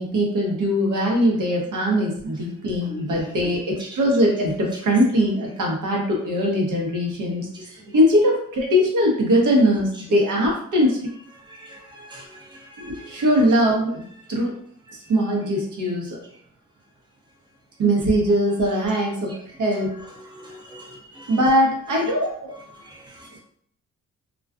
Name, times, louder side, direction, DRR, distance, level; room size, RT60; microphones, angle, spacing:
voice 1, 0.0-7.5 7.9-11.0 12.8-14.0 14.3-14.5 15.1-16.2 17.8-20.0 21.3-22.6, equal, 65° right, -1 dB, 0.9 m, -21 dB
voice 2, 11.5-13.1 19.3-19.4 20.3-21.4 22.8-23.3, equal, 15° right, -2 dB, 0.7 m, -42 dB
2.4 x 2.2 x 2.4 m, 0.63 s
supercardioid pair, 60°, 34 cm